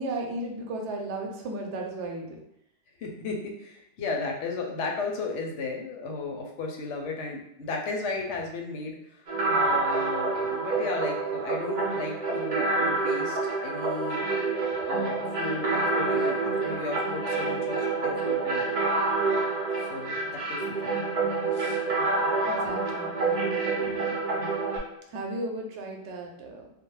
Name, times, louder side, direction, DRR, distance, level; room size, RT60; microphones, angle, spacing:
voice 1, 0.0-2.4 4.0-4.1 22.2-24.2 25.1-26.7, right 2 dB, 80° right, 2 dB, 0.9 m, -36 dB
voice 2, 3.0-9.2 9.5-14.2 14.9-18.7 19.8-20.9 21.5-21.8, left 3 dB, 90° left, 1 dB, 0.9 m, -35 dB
sound 1, 9.3-24.8, right 3 dB, 55° right, 0.6 m, -27 dB
2.3 x 2.0 x 3.0 m, 0.76 s
omnidirectional pair, 1.2 m